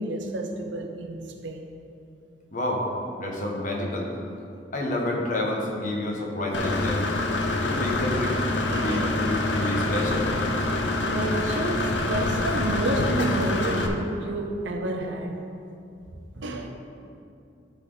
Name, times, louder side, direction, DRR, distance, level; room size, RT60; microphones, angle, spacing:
voice 1, 0.0-1.7 8.7-9.3 11.0-15.4 16.4-16.7, right 2 dB, 80° right, 0.8 m, -30 dB
voice 2, 2.5-2.8 3.2-4.1 4.7-7.0 7.6-8.4 8.8-10.3, left 1 dB, 45° left, 1.2 m, -29 dB
Engine / Mechanisms, 6.5-13.9, left 2 dB, 75° left, 0.7 m, -26 dB
12.0 x 4.1 x 4.0 m
head